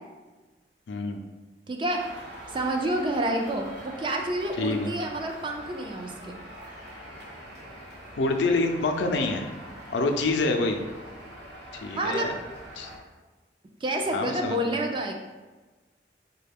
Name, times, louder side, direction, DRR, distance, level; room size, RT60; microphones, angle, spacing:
voice 1, 0.9-1.2 4.6-4.9 8.2-9.5 9.9-10.8 11.7-12.3 12.8-12.9 14.1-14.8, left 2 dB, 85° left, 5 dB, 0.4 m, -26 dB
voice 2, 1.7-2.0 2.5-6.4 12.0-12.3 13.8-15.1, right 1 dB, 30° right, 2 dB, 0.4 m, -28 dB
sound 1, 1.9-13.0, equal, 75° right, 1.0 m, -44 dB
4.8 x 2.2 x 3.4 m, 1.2 s
head